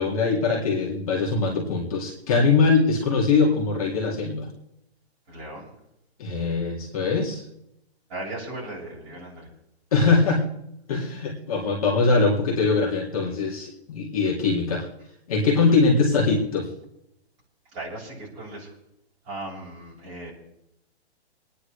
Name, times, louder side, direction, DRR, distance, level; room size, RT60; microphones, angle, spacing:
voice 1, 0.0-4.5 6.2-7.4 9.9-10.4 10.9-14.9 15.3-16.7, left 4 dB, 35° left, -2 dB, 2.4 m, -22 dB
voice 2, 5.3-5.7 8.1-9.5 17.7-18.7 19.3-20.3, right 2 dB, 25° right, -6 dB, 6.7 m, -37 dB
26.5 x 10.0 x 3.3 m, 0.79 s
hypercardioid pair, 175°, 33 cm